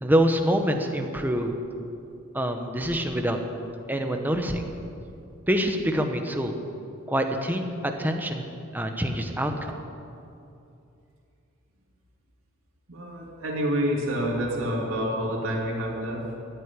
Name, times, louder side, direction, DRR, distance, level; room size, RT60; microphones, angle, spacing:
voice 1, 0.0-1.6 2.3-3.4 3.9-4.6 5.5-6.5 7.1-8.4 8.7-9.7, equal, 10° right, 4 dB, 1.1 m, -25 dB
voice 2, 12.9-16.2, equal, 75° right, -4 dB, 2.9 m, -28 dB
14.5 x 8.4 x 9.9 m, 2.6 s
head